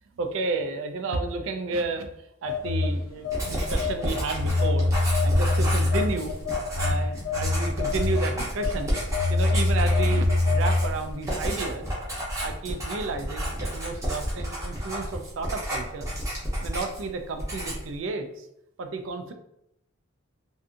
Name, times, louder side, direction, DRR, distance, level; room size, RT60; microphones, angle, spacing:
voice 1, 0.2-2.1 2.4-4.9 5.2-6.3 6.8-9.0 9.3-11.9 12.4-16.1 16.6-18.5 18.8-19.3, right 3 dB, 65° right, 6 dB, 0.4 m, -32 dB
Telephone, 2.5-11.1, left 2 dB, 65° left, 0.3 m, -25 dB
Writing, 3.3-17.1 17.4-17.9, equal, 15° right, 0.6 m, -31 dB
2.6 x 2.5 x 2.4 m, 0.79 s
head